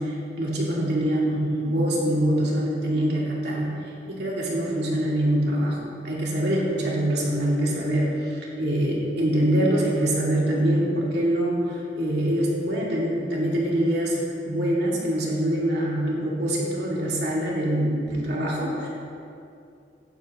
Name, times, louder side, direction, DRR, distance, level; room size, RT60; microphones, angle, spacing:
voice 1, 0.0-18.9, right 1 dB, 65° right, -5 dB, 2.7 m, -24 dB
15.5 x 10.0 x 3.2 m, 2.6 s
head